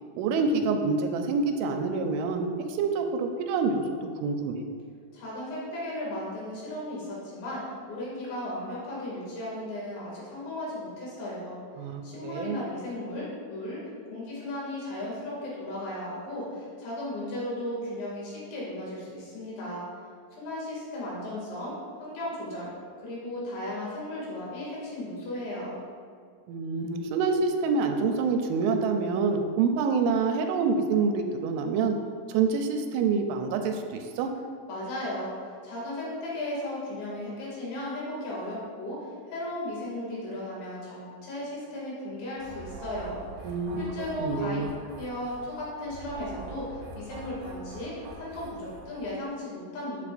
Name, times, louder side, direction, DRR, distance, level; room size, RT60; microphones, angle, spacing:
voice 1, 0.2-4.6 11.8-12.6 26.5-32.0 32.3-34.3 43.4-44.7, right 4 dB, 85° right, 5 dB, 3.0 m, -27 dB
voice 2, 5.1-11.6 12.0-13.8 14.1-19.8 20.4-22.7 23.0-25.8 34.7-44.6 45.0-50.1, left 1 dB, 65° left, -6 dB, 4.6 m, -36 dB
sound 1, 42.4-49.2, right 3 dB, 65° right, 2.4 m, -44 dB
13.5 x 6.7 x 2.6 m, 2.1 s
omnidirectional pair, 5.6 m